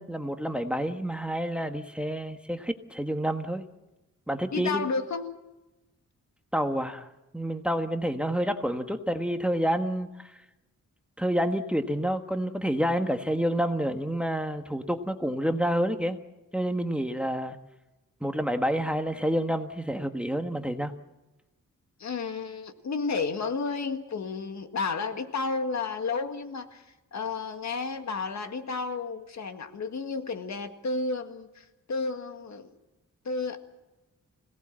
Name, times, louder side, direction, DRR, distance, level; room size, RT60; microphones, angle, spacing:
voice 1, 0.0-3.6 4.3-4.9 6.5-7.1 7.3-10.3 11.2-16.2 16.5-17.6 18.2-20.9, equal, 5° right, 7 dB, 1.3 m, -28 dB
voice 2, 4.5-5.3 22.0-26.9 27.1-32.7 33.3-33.6, left 4 dB, 65° left, 7 dB, 1.9 m, -32 dB
26.0 x 18.0 x 7.5 m, 1.0 s
wide cardioid pair, 125°, 30 cm